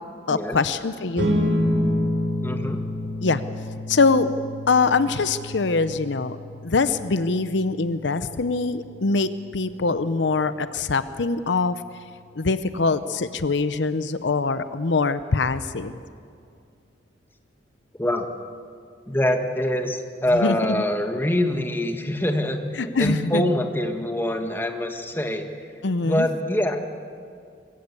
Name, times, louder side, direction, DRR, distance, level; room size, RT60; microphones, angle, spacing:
voice 1, 0.3-1.3 3.2-3.4 3.9-4.3 4.7-6.4 6.6-11.8 12.4-15.9 20.3-20.6 22.8-23.5 25.8-26.3, left 4 dB, 80° left, 13 dB, 0.7 m, -23 dB
sound 1, 1.2-11.9, left 1 dB, 75° right, 3.7 m, -30 dB
voice 2, 2.4-2.8 18.0-18.3 19.1-25.4 26.0-26.8, left 1 dB, 10° left, 5 dB, 1.5 m, -24 dB
22.0 x 15.5 x 8.2 m, 2.3 s
head